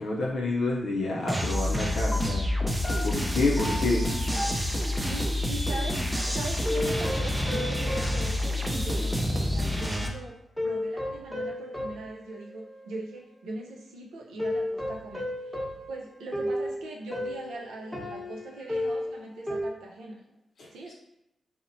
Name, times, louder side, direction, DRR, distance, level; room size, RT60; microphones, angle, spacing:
voice 1, 0.0-4.0 20.6-20.7, left 2 dB, 70° left, -3 dB, 0.4 m, -29 dB
sound 1, 1.3-10.1, left 1 dB, 10° right, 0.5 m, -28 dB
sound 2, 1.5-5.3 6.6-9.2 9.7-9.8 10.6-13.1 14.4-19.6, left 1 dB, 5° left, 0.8 m, -34 dB
voice 2, 3.5-3.9 4.3-4.5 5.1-10.4 10.6-20.2 20.7-20.9, right 2 dB, 90° right, -2 dB, 0.5 m, -41 dB
2.8 x 2.0 x 2.6 m, 0.86 s
supercardioid pair, 45°, 0 cm